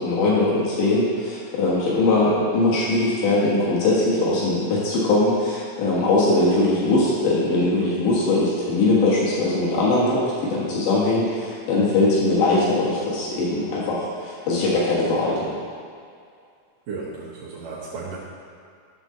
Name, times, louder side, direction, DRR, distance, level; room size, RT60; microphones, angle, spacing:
voice 1, 0.0-15.6, left 2 dB, 85° left, -6 dB, 2.9 m, -21 dB
voice 2, 16.9-18.2, right 4 dB, 65° right, -9 dB, 2.3 m, -34 dB
10.5 x 3.8 x 6.7 m, 2.3 s
omnidirectional pair, 3.5 m